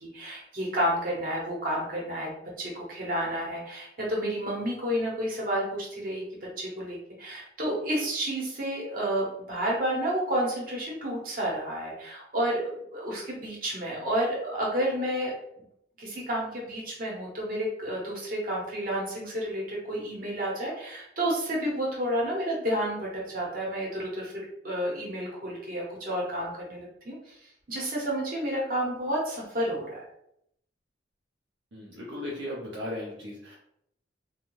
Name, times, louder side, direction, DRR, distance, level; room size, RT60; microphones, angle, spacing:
voice 1, 0.0-6.2 6.6-15.3 16.0-24.3 24.6-27.4 27.7-30.0, right 1 dB, 50° right, -3 dB, 0.9 m, -30 dB
voice 2, 31.7-33.6, left 1 dB, 75° right, -4 dB, 0.6 m, -36 dB
2.5 x 2.2 x 3.1 m, 0.75 s
head